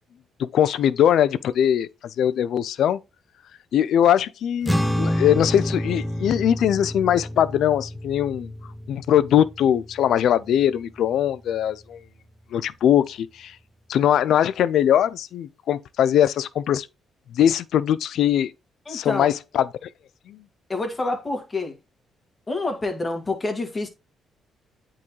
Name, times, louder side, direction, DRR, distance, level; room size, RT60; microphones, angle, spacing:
voice 1, 0.4-3.0 3.7-8.5 8.9-12.0 12.5-13.6 13.9-16.9 17.3-18.5 18.9-19.7 20.3-20.4, left 10 dB, 75° left, 0.4 m, -21 dB
sound 1, 4.6-11.3, equal, ahead, 0.7 m, -29 dB
voice 2, 18.9-19.3 20.7-21.8 22.5-23.9, left 2 dB, 25° left, 1.8 m, -27 dB
8.4 x 3.7 x 3.1 m
cardioid pair, 90°, 0 cm